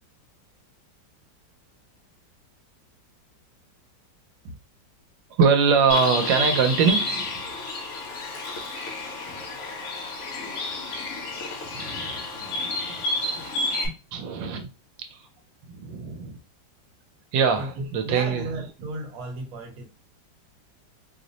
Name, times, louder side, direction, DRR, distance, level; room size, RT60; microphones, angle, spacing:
voice 1, 5.4-7.4 11.7-13.0 13.8-14.7 15.1-15.2 15.7-16.4 17.3-18.4, right 5 dB, 90° right, 1.4 m, -23 dB
Bird, 5.9-13.9, left 2 dB, 55° left, 0.9 m, -30 dB
voice 2, 17.5-19.9, right 2 dB, 55° right, 1.2 m, -34 dB
3.1 x 2.1 x 3.9 m
omnidirectional pair, 2.0 m